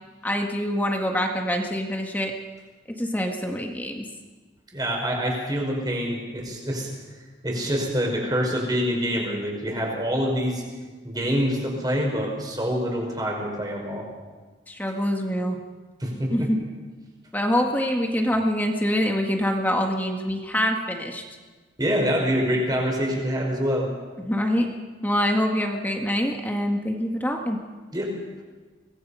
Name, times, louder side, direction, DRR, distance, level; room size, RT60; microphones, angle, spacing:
voice 1, 0.2-2.3 3.0-4.0 14.7-15.6 16.3-16.6 17.3-21.2 24.2-24.7 25.0-27.6, equal, 10° left, 2 dB, 1.7 m, -25 dB
voice 2, 4.7-6.9 7.4-10.6 11.0-14.1 16.0-16.5 21.8-23.9 27.9-28.2, equal, 20° right, 0 dB, 5.2 m, -26 dB
24.5 x 19.5 x 5.7 m, 1.4 s
head